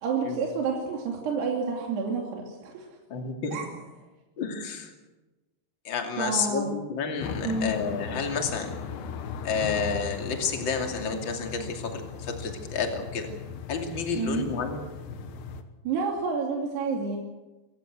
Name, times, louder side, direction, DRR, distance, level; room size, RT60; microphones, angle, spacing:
voice 1, 0.0-2.9 3.5-3.7 6.2-6.7 7.4-7.7 14.1-14.5 15.8-17.2, right 4 dB, 75° right, 0 dB, 4.5 m, -29 dB
voice 2, 3.1-3.6 4.4-4.9 5.8-8.7 9.4-13.3 13.7-14.8, left 5 dB, 30° left, 4 dB, 2.8 m, -30 dB
sound 1, 7.2-15.6, left 6 dB, 80° left, 3.5 m, -38 dB
26.5 x 15.0 x 8.0 m, 1.1 s
omnidirectional pair, 4.8 m